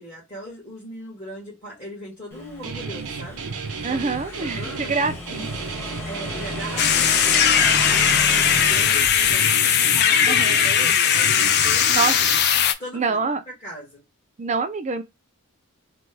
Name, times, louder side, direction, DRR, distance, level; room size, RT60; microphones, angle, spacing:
voice 1, 0.0-3.4 3.9-5.5 6.1-7.4 7.8-12.2 12.8-13.3 13.6-14.0, equal, 30° left, 1.5 m, -38 dB
Motorcycle / Engine, 2.3-9.3, left 1 dB, 10° left, 1.2 m, -33 dB
Guitar, 2.6-12.4, right 5 dB, 85° right, 0.7 m, -33 dB
voice 2, 3.8-5.5 10.3-10.6 11.9-12.1 12.9-13.4 14.4-15.0, right 4 dB, 30° right, 0.4 m, -25 dB
sound 1, 6.8-12.7, left 8 dB, 50° left, 0.4 m, -19 dB
3.2 x 2.2 x 3.3 m
head